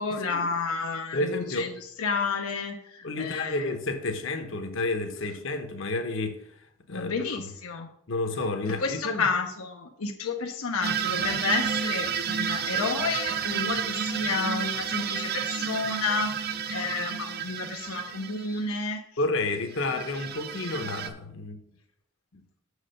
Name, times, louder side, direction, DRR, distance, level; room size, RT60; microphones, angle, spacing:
voice 1, 0.0-3.7 6.9-7.9 8.6-19.0, left 4 dB, 85° left, 0.8 m, -31 dB
voice 2, 1.1-1.7 3.0-6.4 6.9-7.5 8.1-9.3 19.2-21.6 22.3-22.4, left 2 dB, 60° left, 1.0 m, -30 dB
sound 1, 10.8-18.6 19.7-21.1, right 7 dB, 45° right, 0.5 m, -31 dB
6.4 x 4.9 x 6.5 m
head